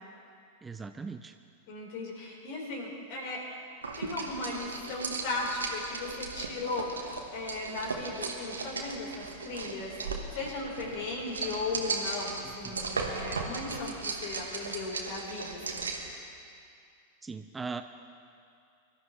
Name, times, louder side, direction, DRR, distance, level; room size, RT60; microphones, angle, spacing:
voice 1, 0.6-1.3 12.4-12.8 17.2-17.8, right 4 dB, 15° right, 8 dB, 0.5 m, -39 dB
voice 2, 1.7-3.4 4.0-10.0 10.3-15.9, left 3 dB, 50° left, -2 dB, 4.5 m, -37 dB
sound 1, 3.8-16.1, right 4 dB, 75° right, 1.6 m, -37 dB
24.0 x 13.0 x 3.4 m, 2.4 s
figure-of-eight pair, 90°, 0 cm